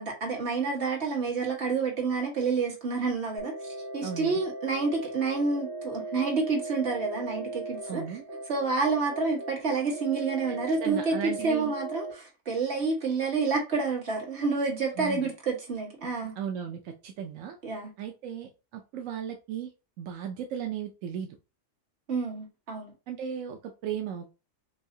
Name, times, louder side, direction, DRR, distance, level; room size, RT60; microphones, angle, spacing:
voice 1, 0.0-8.2 8.4-16.3 17.6-17.9 22.1-22.9, right 4 dB, 60° right, 1.7 m, -29 dB
sound 1, 3.4-12.1, right 2 dB, 25° left, 1.4 m, -38 dB
voice 2, 4.0-4.4 7.9-8.2 10.8-11.7 15.0-15.2 16.4-17.6 18.0-19.7 20.0-21.3 23.1-24.3, right 8 dB, 90° right, 1.0 m, -36 dB
4.6 x 2.7 x 2.6 m
omnidirectional pair, 1.3 m